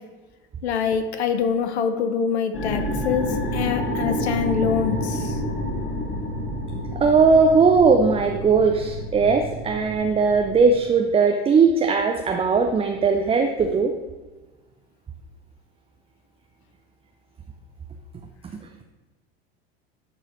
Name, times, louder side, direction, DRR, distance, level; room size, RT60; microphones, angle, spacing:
voice 1, 0.6-5.3, left 7 dB, 85° left, 9 dB, 0.8 m, -25 dB
sound 1, 2.5-10.8, equal, 40° left, 1.8 m, -29 dB
voice 2, 6.9-13.9, right 5 dB, 20° right, 4 dB, 0.5 m, -19 dB
11.5 x 3.9 x 3.1 m, 1.2 s
hypercardioid pair, 85°, 32 cm